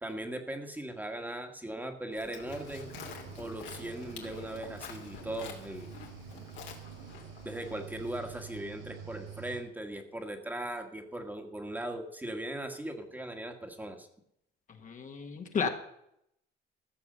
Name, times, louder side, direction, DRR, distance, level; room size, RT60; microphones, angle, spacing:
voice 1, 0.0-2.9 3.4-6.0 7.4-14.1, right 1 dB, 10° right, 4 dB, 1.6 m, -39 dB
Livestock farm animals working animals, 2.1-8.6, left 7 dB, 70° left, 2.9 m, -49 dB
Cricket / Waves surf, 2.4-9.6, right 6 dB, 80° right, 5.5 m, -47 dB
voice 2, 14.7-15.7, left 6 dB, 40° left, 5 dB, 1.6 m, -33 dB
14.5 x 7.0 x 6.6 m, 0.76 s
cardioid pair, 115°, 19 cm